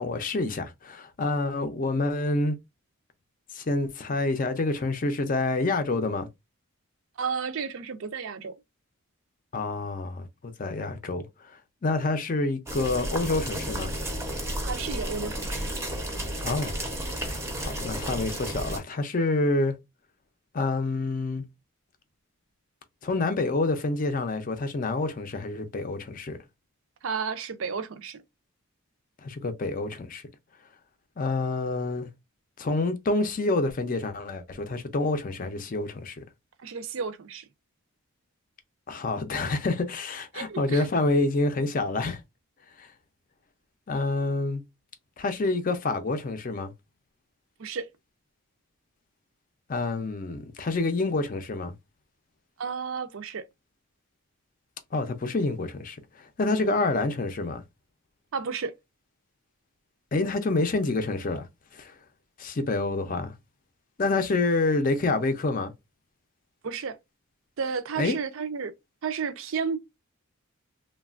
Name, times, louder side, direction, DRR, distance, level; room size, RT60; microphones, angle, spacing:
voice 1, 0.0-2.6 3.5-6.3 9.5-13.9 16.4-16.8 17.2-19.8 20.5-21.4 23.0-26.4 29.2-30.3 31.2-32.1 32.6-36.2 38.9-42.2 42.8-42.9 43.9-44.6 45.2-46.7 49.7-51.7 54.9-57.6 60.1-62.0 62.4-63.3 64.0-65.7 68.0-68.2, left 2 dB, 35° left, 0.4 m, -28 dB
voice 2, 7.2-8.5 14.6-15.7 27.0-28.2 36.6-37.5 40.3-40.9 47.6-47.9 52.6-53.4 56.7-56.8 58.3-58.7 66.6-67.0 67.6-68.7 69.0-69.8, right 5 dB, 60° right, 0.4 m, -32 dB
sound 1, 12.7-18.8, right 1 dB, 10° right, 0.5 m, -32 dB
3.1 x 2.2 x 2.4 m
head